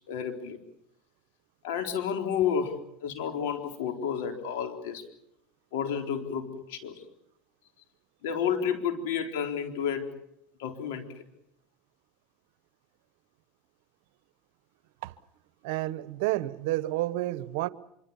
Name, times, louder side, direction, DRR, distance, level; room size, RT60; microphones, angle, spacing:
voice 1, 0.1-0.6 1.6-5.0 5.7-7.0 8.2-10.1 10.6-11.2, left 7 dB, 80° left, 4.0 m, -31 dB
voice 2, 15.6-17.7, right 17 dB, 75° right, 1.1 m, -30 dB
25.5 x 24.5 x 7.2 m
supercardioid pair, 115°, 0 cm